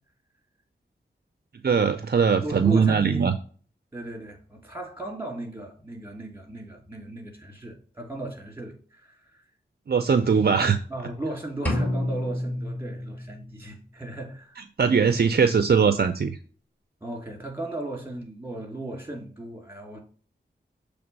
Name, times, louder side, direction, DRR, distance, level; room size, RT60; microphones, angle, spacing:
voice 1, 1.6-3.3 9.9-10.8 14.8-16.3, right 6 dB, 55° right, 0.5 m, -20 dB
voice 2, 2.4-3.2 3.9-9.4 10.9-14.6 17.0-20.0, right 1 dB, 10° right, 2.8 m, -36 dB
sound 1, 11.7-13.6, left 1 dB, 10° left, 2.0 m, -29 dB
6.9 x 3.5 x 5.2 m
wide cardioid pair, 70°, 19 cm